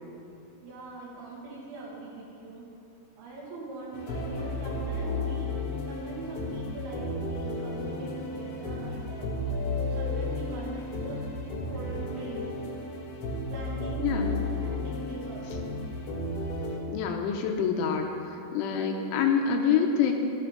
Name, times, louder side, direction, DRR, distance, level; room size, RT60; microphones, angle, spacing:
voice 1, 0.6-2.7 3.2-5.5 5.9-9.3 9.8-11.2 11.7-12.7 13.5-15.6, right 2 dB, 80° right, -4 dB, 5.1 m, -42 dB
sound 1, 3.9-16.8, left 2 dB, 60° left, 2.5 m, -33 dB
voice 2, 14.0-14.4 15.5-15.6 16.9-20.1, left 7 dB, 80° left, 3 dB, 3.1 m, -27 dB
14.5 x 12.5 x 3.9 m, 2.6 s
omnidirectional pair, 5.9 m